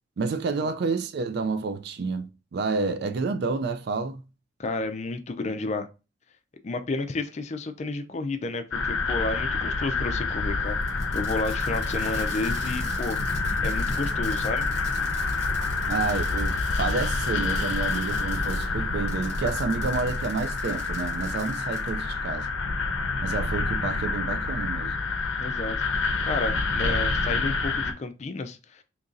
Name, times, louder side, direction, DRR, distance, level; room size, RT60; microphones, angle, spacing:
voice 1, 0.2-4.2 15.9-22.5 23.2-25.0, right 4 dB, 55° right, 0.4 m, -29 dB
voice 2, 4.6-5.9 6.6-10.8 11.1-13.2 13.6-14.7 25.4-25.8 26.2-28.8, left 3 dB, 35° left, 0.4 m, -31 dB
sound 1, 8.7-27.9, left 3 dB, 85° left, 0.6 m, -27 dB
Fireworks, 10.8-18.7 19.1-21.9, right 3 dB, 40° right, 1.0 m, -46 dB
2.9 x 2.6 x 3.7 m
head